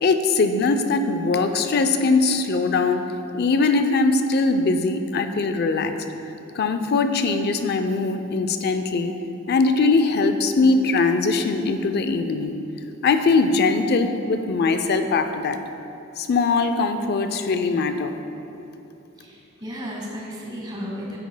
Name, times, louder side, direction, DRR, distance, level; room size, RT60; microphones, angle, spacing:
voice 1, 0.0-3.1 3.3-5.9 6.6-9.1 9.5-12.6 13.0-15.6 16.2-18.1, left 3 dB, 50° left, 8 dB, 0.4 m, -21 dB
voice 2, 19.2-21.2, equal, 20° right, -3 dB, 1.2 m, -34 dB
9.6 x 9.2 x 2.2 m, 2.9 s
head